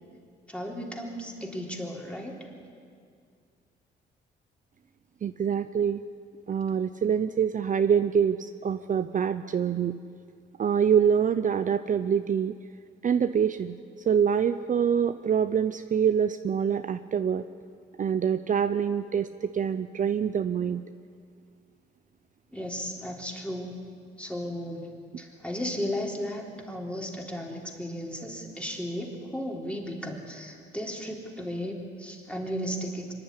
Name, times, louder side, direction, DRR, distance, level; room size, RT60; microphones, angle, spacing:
voice 1, 0.5-2.3 22.5-23.8 24.2-33.1, equal, 5° left, -1 dB, 3.7 m, -35 dB
voice 2, 5.2-6.0 6.5-10.0 10.6-12.6 13.0-13.8 14.1-17.5 18.0-20.8, right 7 dB, 40° right, 10 dB, 0.6 m, -25 dB
24.5 x 11.0 x 9.9 m, 2.3 s
cardioid pair, 90°, 20 cm